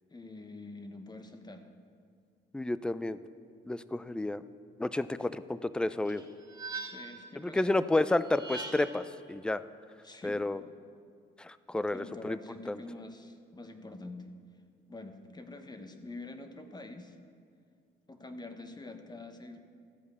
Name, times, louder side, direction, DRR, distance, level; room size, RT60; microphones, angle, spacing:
voice 1, 0.1-1.7 6.8-7.7 10.0-10.4 11.9-14.3 14.9-17.2 18.1-19.6, left 2 dB, 20° left, 7 dB, 1.0 m, -46 dB
voice 2, 2.5-3.2 3.7-4.4 4.8-6.2 7.4-9.6 10.2-10.6 11.4-12.4 12.7-12.8, left 2 dB, 5° left, 14 dB, 0.3 m, -31 dB
sound 1, 6.0-7.3 8.2-9.1, right 3 dB, 20° right, 1.8 m, -42 dB
13.5 x 5.1 x 8.1 m, 2.2 s
cardioid pair, 90°, 20 cm